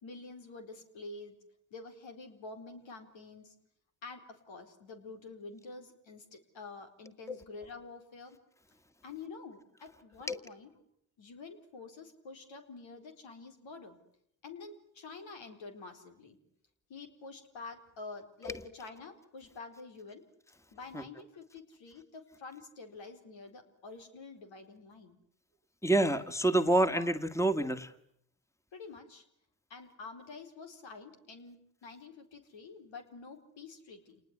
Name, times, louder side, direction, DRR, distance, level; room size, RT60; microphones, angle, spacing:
voice 1, 0.0-1.4 1.7-3.5 4.0-8.4 9.0-10.7 11.2-14.0 14.4-16.4 16.9-20.3 20.7-25.2 28.7-29.2 29.7-34.2, left 3 dB, 80° left, 5 dB, 4.3 m, -48 dB
voice 2, 25.8-27.9, right 1 dB, 5° left, 9 dB, 2.0 m, -28 dB
28.5 x 20.0 x 9.7 m, 0.71 s
supercardioid pair, 55°, 45 cm